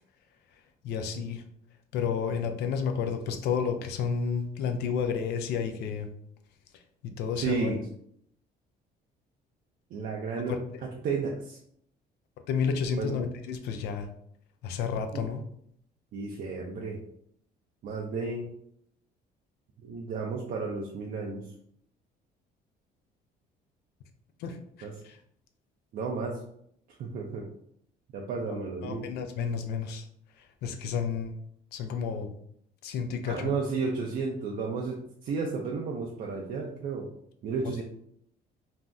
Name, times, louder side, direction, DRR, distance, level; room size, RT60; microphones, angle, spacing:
voice 1, 0.8-1.4 1.9-6.1 7.0-7.8 10.5-10.6 12.5-14.1 14.6-15.4 24.4-25.2 28.5-30.1 30.6-31.3 31.7-32.3 32.8-33.5 37.6-37.7, left 6 dB, 75° left, 7 dB, 0.4 m, -31 dB
voice 2, 7.4-7.8 9.9-10.6 11.0-11.6 13.0-13.2 15.1-15.3 16.1-17.0 17.8-18.5 19.8-21.4 24.8-24.9 25.9-26.4 27.0-27.4 28.1-29.0 33.3-35.0 35.2-37.1 37.4-37.8, right 4 dB, 60° right, -1 dB, 0.5 m, -32 dB
2.6 x 2.0 x 3.4 m, 0.69 s
cardioid pair, 110°, 17 cm